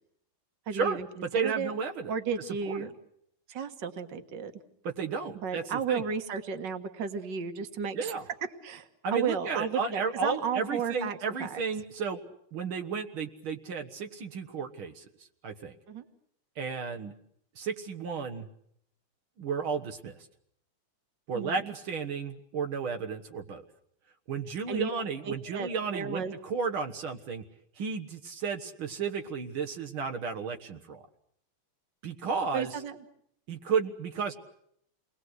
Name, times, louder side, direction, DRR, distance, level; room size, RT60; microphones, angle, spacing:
voice 1, 0.7-1.1 1.3-1.7 2.1-2.9 3.5-4.5 5.3-8.2 8.6-11.6 15.9-16.1 21.3-21.7 24.7-26.3 32.5-33.0, right 6 dB, 60° right, 8 dB, 2.1 m, -33 dB
voice 2, 1.3-2.1 2.7-2.9 4.8-5.6 5.9-6.0 8.0-8.2 9.0-12.2 12.5-15.1 15.4-15.7 16.6-17.1 17.6-18.5 19.4-20.2 21.3-23.6 24.3-27.4 27.8-31.0 32.0-32.7 33.5-34.3, right 5 dB, 75° right, 5 dB, 2.2 m, -33 dB
29.0 x 21.0 x 8.0 m, 0.71 s
omnidirectional pair, 2.3 m